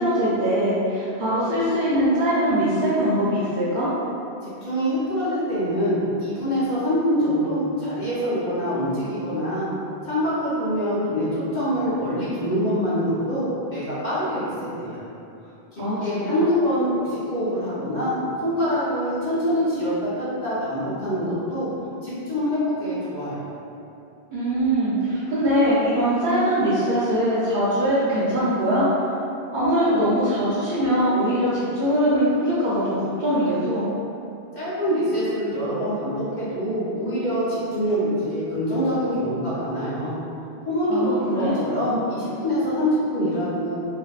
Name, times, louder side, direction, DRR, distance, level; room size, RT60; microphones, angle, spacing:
voice 1, 0.0-3.9 15.8-16.4 24.3-28.9 29.5-33.9 40.9-41.6, equal, 55° right, -11 dB, 0.6 m, -22 dB
voice 2, 4.4-9.7 10.0-14.5 14.8-15.0 15.7-18.1 18.4-21.7 22.0-23.5 34.5-40.1 40.7-43.8, equal, 45° left, -12 dB, 0.8 m, -25 dB
2.6 x 2.1 x 2.3 m, 2.7 s
omnidirectional pair, 1.1 m